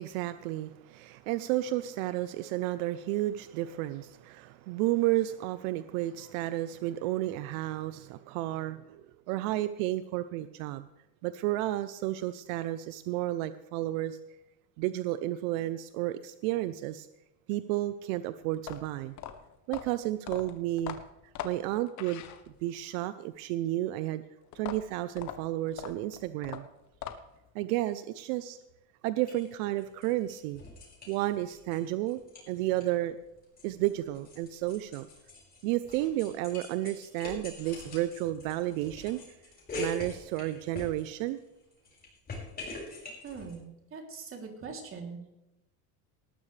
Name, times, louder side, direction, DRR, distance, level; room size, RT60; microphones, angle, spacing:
voice 1, 0.0-9.0 9.3-10.9 11.2-14.2 14.8-17.1 17.5-19.2 19.7-21.0 21.4-22.2 22.6-24.2 24.5-26.7 27.5-28.6 29.0-30.6 31.1-32.2 32.5-33.2 33.6-35.1 35.6-39.2 39.8-41.4, right 15 dB, 80° right, 13 dB, 0.7 m, -32 dB
sound 1, 18.5-22.9 24.5-27.5, left 10 dB, 45° left, 1.2 m, -42 dB
sound 2, 29.2-29.5 29.8-31.8 32.1-32.9 33.2-41.4 41.7-43.5, left 2 dB, 25° left, 5.7 m, -44 dB
voice 2, 43.2-43.6 43.9-45.3, right 5 dB, 30° right, 2 dB, 3.2 m, -42 dB
18.5 x 13.0 x 3.4 m, 0.92 s
cardioid pair, 140°, 41 cm